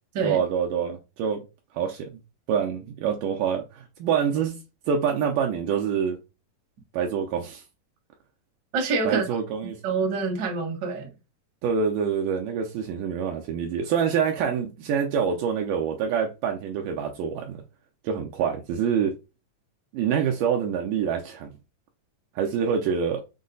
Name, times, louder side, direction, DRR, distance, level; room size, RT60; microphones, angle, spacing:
voice 1, 0.2-1.4 1.7-2.1 2.5-4.6 4.9-6.2 6.9-7.6 9.1-9.8 11.6-17.5 18.0-19.1 19.9-21.5 22.4-23.2, right 7 dB, 80° right, 2.0 m, -26 dB
voice 2, 8.7-9.2 9.8-11.1, right 4 dB, 50° right, 1.3 m, -26 dB
6.3 x 2.1 x 3.9 m
omnidirectional pair, 4.2 m